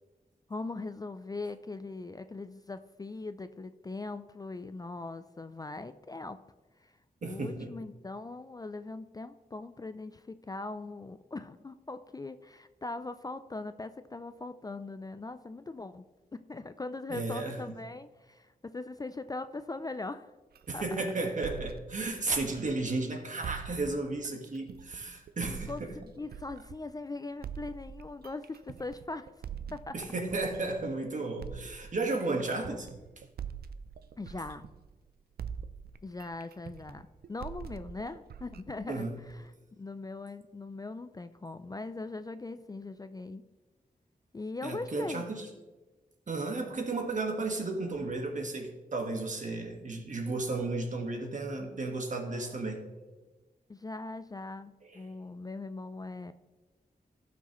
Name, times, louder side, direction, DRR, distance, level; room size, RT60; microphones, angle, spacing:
voice 1, 0.5-6.4 6.8-6.9 7.2-16.0 16.3-20.3 20.7-21.0 25.4-29.3 29.7-29.9 32.1-32.8 34.2-34.6 36.0-43.4 44.3-45.2 53.7-56.3, left 3 dB, 25° left, 11 dB, 0.3 m, -40 dB
voice 2, 7.2-7.7 17.1-17.6 20.7-25.9 29.9-32.9 38.9-39.1 44.6-45.5 46.3-53.1 54.9-55.0, right 3 dB, 55° right, 3 dB, 1.5 m, -34 dB
sound 1, 20.6-23.0 23.4-27.0 27.4-31.0 31.4-35.1 35.4-39.5, right 7 dB, 90° right, 0.4 m, -44 dB
15.5 x 6.2 x 3.1 m, 1.2 s
wide cardioid pair, 100°, 16 cm